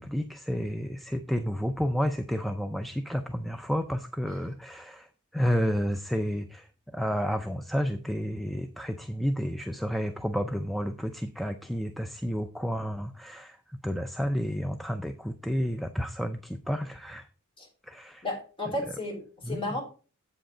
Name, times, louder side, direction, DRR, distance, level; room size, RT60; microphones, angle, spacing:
voice 1, 0.0-17.3 17.8-18.2 18.7-18.8 19.4-19.8, equal, ahead, 7 dB, 0.4 m, -31 dB
voice 2, 18.2-19.8, left 1 dB, 25° left, -1 dB, 3.9 m, -33 dB
7.9 x 7.8 x 4.9 m, 0.37 s
head